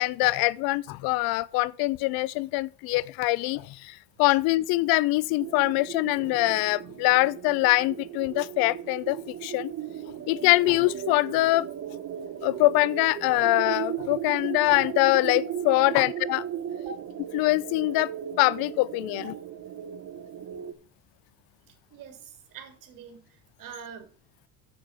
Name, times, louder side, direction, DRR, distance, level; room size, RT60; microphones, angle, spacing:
voice 1, 0.0-9.7 10.3-11.7 12.4-16.4 17.3-18.1 18.4-19.3, left 20 dB, 70° left, 0.6 m, -24 dB
sound 1, 5.4-20.7, right 9 dB, 40° right, 1.2 m, -36 dB
voice 2, 21.7-24.1, right 4 dB, 60° right, 3.2 m, -44 dB
7.5 x 7.2 x 5.9 m
supercardioid pair, 105°, 38 cm